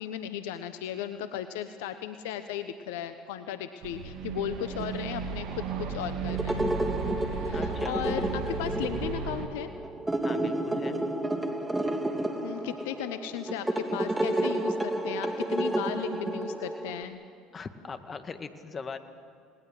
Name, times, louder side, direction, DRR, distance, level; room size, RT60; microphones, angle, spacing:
voice 1, 0.0-6.6 7.3-9.7 12.4-17.2, left 10 dB, 75° left, 10 dB, 1.0 m, -36 dB
sound 1, 3.8-9.5, right 5 dB, 60° right, 2.5 m, -35 dB
sound 2, 6.3-17.0, right 1 dB, 10° right, 2.9 m, -31 dB
voice 2, 7.5-8.0 10.2-11.0 17.5-19.0, left 5 dB, 35° left, 9 dB, 1.9 m, -40 dB
29.5 x 20.0 x 7.8 m, 2.4 s
hypercardioid pair, 70°, 0 cm